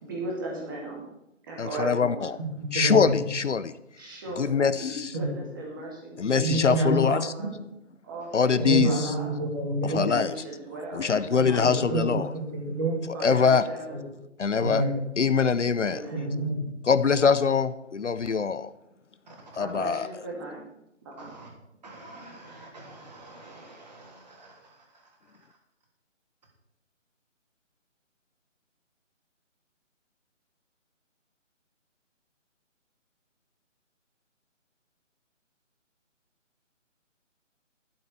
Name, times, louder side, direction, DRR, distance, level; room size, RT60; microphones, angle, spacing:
voice 1, 0.0-1.1 1.4-2.3 4.0-4.6 5.1-6.2 6.8-7.5 8.0-9.3 10.0-12.3 13.1-14.0 15.8-16.3 19.6-20.6 21.0-21.3, right 2 dB, 15° right, -1 dB, 2.3 m, -37 dB
voice 2, 1.6-2.3 2.7-3.8 4.4-5.2 6.2-7.3 8.3-9.1 9.8-10.3 10.9-12.3 13.2-13.6 14.4-14.8 15.2-16.0 16.9-18.7 19.6-20.1, left 5 dB, 65° left, 13 dB, 0.8 m, -23 dB
voice 3, 2.4-3.2 5.1-5.4 6.4-7.0 7.4-7.5 8.6-10.1 11.4-13.0 13.9-14.0 14.6-15.0 16.1-16.6 18.2-18.3 19.3-19.4 21.2-21.5 21.8-24.7, right 2 dB, 35° right, 0 dB, 3.3 m, -30 dB
12.0 x 7.5 x 6.8 m, 0.84 s
figure-of-eight pair, 170°, 38 cm